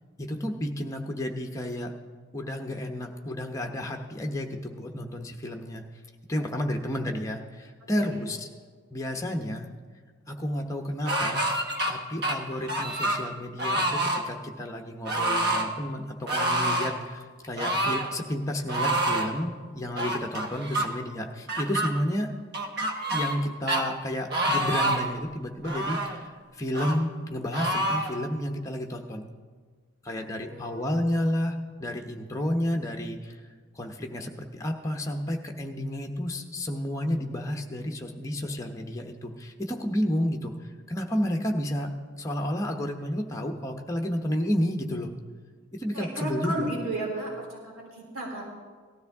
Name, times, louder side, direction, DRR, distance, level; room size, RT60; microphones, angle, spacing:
voice 1, 0.2-1.9 2.3-5.8 6.3-8.5 8.9-9.7 10.3-11.5 11.9-22.3 23.1-26.3 26.6-29.3 30.0-33.4 33.7-40.5 40.9-41.9 42.2-45.1 45.7-46.7, equal, 15° left, 3 dB, 0.8 m, -31 dB
voice 2, 7.8-8.3 30.1-31.2 45.9-48.4, right 1 dB, 80° right, -1 dB, 3.2 m, -35 dB
sound 1, 11.1-11.9 12.2-13.2 13.6-14.2 15.1-15.7 16.3-16.9 17.6-18.1 18.7-19.3 20.0-20.9 21.5-21.9 22.5-23.4 23.7-23.8 24.3-25.1 25.6-26.2 26.7-27.0 27.5-28.1, right 1 dB, 50° right, 1.1 m, -27 dB
18.0 x 12.5 x 3.5 m, 1.6 s
head